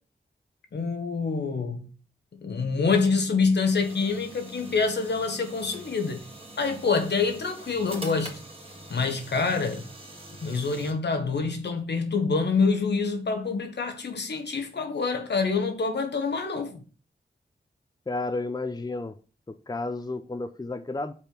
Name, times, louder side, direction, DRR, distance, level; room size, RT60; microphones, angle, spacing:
voice 1, 0.7-1.9 2.3-6.2 6.6-8.4 8.9-9.8 10.4-16.8, left 4 dB, 70° left, 1.2 m, -26 dB
sound 1, 3.7-10.9, right 1 dB, 30° right, 2.0 m, -44 dB
voice 2, 18.1-19.1 19.5-21.1, left 2 dB, 20° left, 0.6 m, -32 dB
5.5 x 4.3 x 5.0 m
cardioid pair, 40°, 18 cm